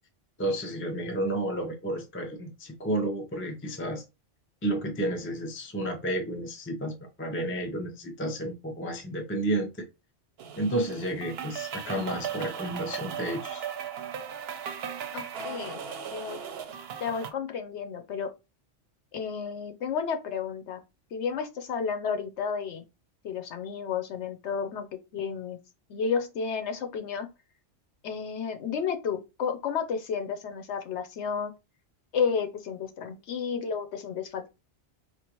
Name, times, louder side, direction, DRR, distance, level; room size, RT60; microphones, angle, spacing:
voice 1, 0.4-4.0 4.6-9.9 10.6-13.7, right 1 dB, 15° left, 0.4 m, -31 dB
sound 1, 10.4-17.3, right 8 dB, 65° right, 0.8 m, -37 dB
voice 2, 15.1-15.8 16.1-16.4 17.0-18.3 19.1-20.8 21.1-22.9 23.2-25.6 25.9-27.3 28.0-31.5 32.1-34.5, left 6 dB, 70° left, 0.9 m, -32 dB
4.4 x 2.4 x 3.0 m
omnidirectional pair, 1.3 m